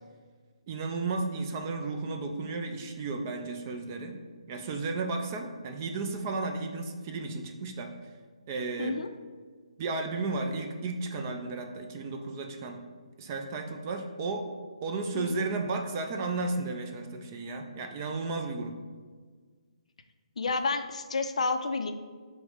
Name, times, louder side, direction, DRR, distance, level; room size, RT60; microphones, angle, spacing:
voice 1, 0.7-4.2 4.5-7.9 8.5-9.0 9.8-12.8 13.2-14.5 14.8-18.8, right 3 dB, 25° right, 4 dB, 0.3 m, -33 dB
voice 2, 8.8-9.1 15.1-15.4 20.4-21.9, left 4 dB, 70° left, 7 dB, 0.4 m, -30 dB
4.8 x 2.1 x 4.7 m, 1.5 s
hypercardioid pair, 160°, 4 cm